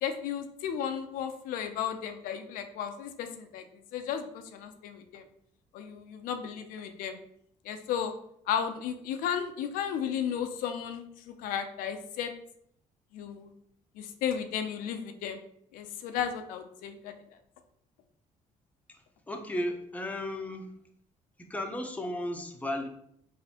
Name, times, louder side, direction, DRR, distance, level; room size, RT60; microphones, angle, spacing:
voice 1, 0.0-3.6 3.9-5.2 5.7-7.2 7.6-8.1 8.5-12.3 13.1-13.5 14.0-15.4 15.7-17.1, left 8 dB, 90° left, 7 dB, 0.4 m, -34 dB
voice 2, 18.9-20.7 21.4-22.9, left 1 dB, 10° left, 4 dB, 0.5 m, -35 dB
4.0 x 2.5 x 2.8 m, 0.70 s
cardioid pair, 85°, 14 cm